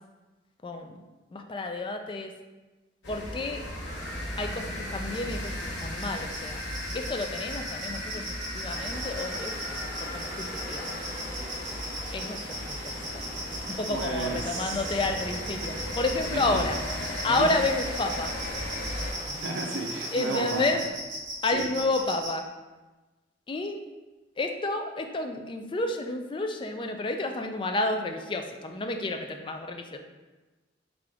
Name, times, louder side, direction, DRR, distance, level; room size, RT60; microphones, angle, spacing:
voice 1, 0.6-1.0 1.3-2.3 3.1-3.6 4.4-6.6 6.9-9.5 10.0-11.1 12.1-12.8 13.7-16.8 17.2-18.3 20.1-20.8 21.4-22.4 23.5-23.8 24.4-30.0, left 2 dB, 25° left, 4 dB, 0.4 m, -30 dB
sound 1, 3.0-19.1, left 1 dB, 85° left, 1.0 m, -36 dB
railwayplacecricket (Snippet), 5.1-22.3, right 2 dB, 45° right, 1.4 m, -38 dB
sound 2, 8.7-20.7, left 1 dB, 20° right, 0.9 m, -43 dB
voice 2, 13.9-14.8 16.3-16.6 17.3-17.5 19.3-20.7 21.5-21.7, right 2 dB, 85° right, 2 dB, 0.5 m, -33 dB
3.8 x 3.6 x 3.4 m, 1.2 s
head